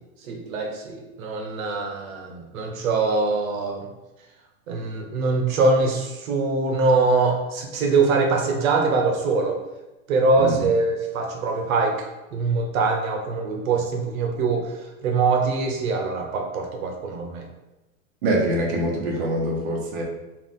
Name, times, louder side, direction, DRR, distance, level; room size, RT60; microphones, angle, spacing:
voice 1, 0.3-3.9 4.7-9.6 10.1-12.0 12.3-17.4, right 3 dB, 80° right, 2 dB, 0.9 m, -23 dB
voice 2, 18.2-20.0, right 1 dB, 40° right, -1 dB, 0.9 m, -24 dB
4.6 x 2.3 x 3.6 m, 1.1 s
supercardioid pair, 165°, 40 cm